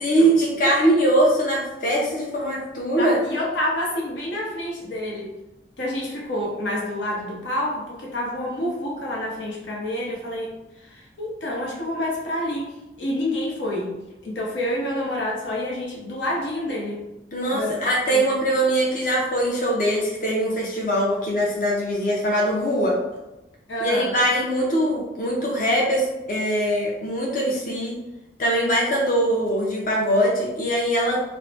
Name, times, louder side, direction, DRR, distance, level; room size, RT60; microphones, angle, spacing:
voice 1, 0.0-3.2 17.3-23.0 23.8-28.0 28.4-31.3, right 1 dB, 45° left, -3 dB, 0.5 m, -22 dB
voice 2, 2.9-5.4 5.8-10.5 10.8-14.0 14.2-17.1 17.5-18.2 23.7-24.2, left 1 dB, 90° left, -2 dB, 0.8 m, -28 dB
3.1 x 2.0 x 3.0 m, 0.96 s
head